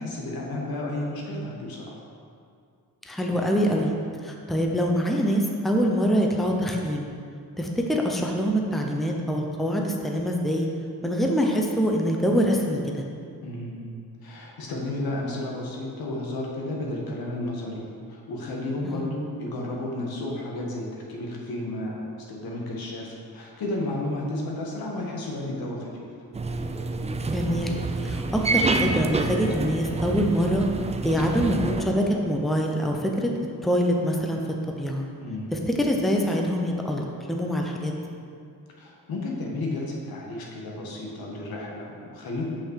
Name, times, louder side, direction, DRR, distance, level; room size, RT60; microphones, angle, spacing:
voice 1, 0.0-2.0 13.4-13.9 14.2-17.8 18.1-26.1 35.2-35.5 38.8-42.4, left 1 dB, 80° left, -2 dB, 1.7 m, -32 dB
voice 2, 3.1-4.0 4.2-7.1 7.6-10.7 11.0-13.0 18.8-19.2 27.3-30.7 31.0-33.3 33.6-35.1 35.5-37.9, equal, ahead, 0 dB, 0.8 m, -25 dB
sound 1, 26.3-31.8, right 3 dB, 20° right, 0.4 m, -28 dB
6.0 x 5.8 x 6.5 m, 2.3 s
cardioid pair, 110°, 36 cm